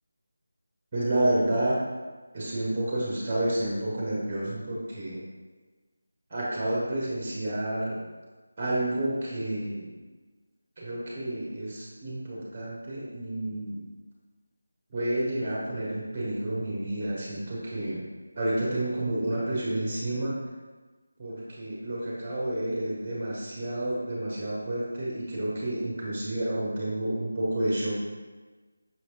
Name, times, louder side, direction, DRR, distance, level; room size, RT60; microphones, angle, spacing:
voice 1, 0.9-1.9 2.3-5.2 6.3-8.0 8.6-9.9 10.8-13.8 14.9-18.0 18.4-20.3 21.2-28.0, right 1 dB, 25° right, -5 dB, 0.9 m, -30 dB
5.6 x 3.0 x 2.9 m, 1.3 s
figure-of-eight pair, 165°, 0 cm